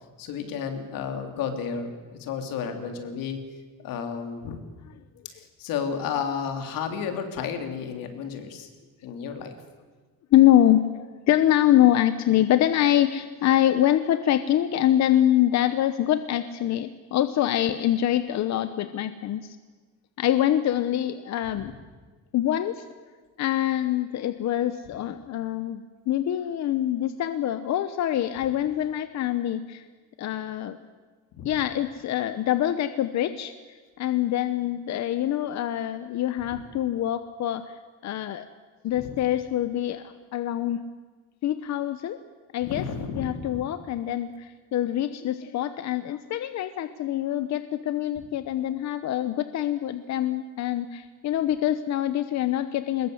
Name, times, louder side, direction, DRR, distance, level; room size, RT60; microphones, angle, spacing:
voice 1, 0.2-3.4 3.8-4.6 5.3-8.7 9.0-9.5 21.5-21.7 31.4-31.6 36.5-36.6 38.9-39.2 42.6-43.7, left 6 dB, 85° left, 5 dB, 3.3 m, -32 dB
voice 2, 10.3-19.6 20.2-21.7 22.3-22.8 23.4-29.8 30.2-30.8 31.4-33.5 34.0-37.8 38.0-38.4 38.8-40.8 41.4-42.2 42.5-42.8 43.2-53.1, left 12 dB, 55° left, 11 dB, 1.0 m, -24 dB
22.5 x 21.0 x 8.0 m, 1.4 s
cardioid pair, 155°, 33 cm